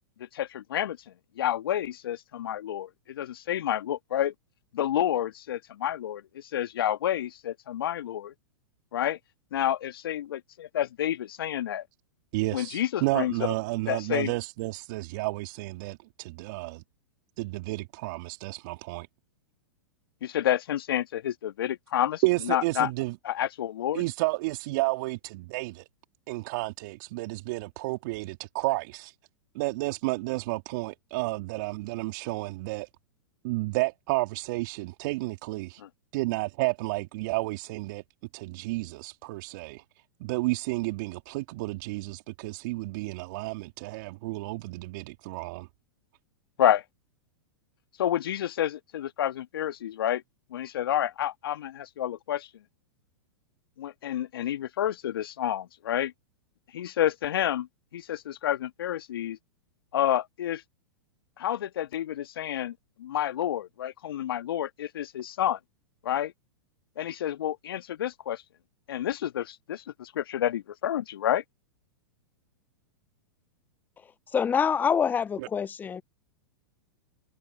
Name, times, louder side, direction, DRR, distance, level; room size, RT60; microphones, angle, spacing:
voice 1, 0.2-1.0 1.4-4.3 4.7-8.3 8.9-9.2 9.5-11.8 12.5-13.5 13.9-14.3 20.2-22.9 23.2-24.0 46.6-46.8 48.0-50.2 50.5-52.5 53.8-56.1 56.7-57.7 57.9-59.4 59.9-60.6 61.4-65.6 66.0-66.3 67.0-68.4 68.9-71.4, left 11 dB, 65° left, 1.6 m, -29 dB
voice 2, 12.3-16.8 17.4-19.1 22.2-23.2 23.9-25.9 26.3-29.1 29.5-32.9 33.4-35.8 36.1-38.0 38.3-39.8 40.2-45.7 75.4-75.5, right 22 dB, 50° right, 2.6 m, -31 dB
voice 3, 74.3-76.0, left 7 dB, 15° left, 0.4 m, -25 dB
hypercardioid pair, 105°, 13 cm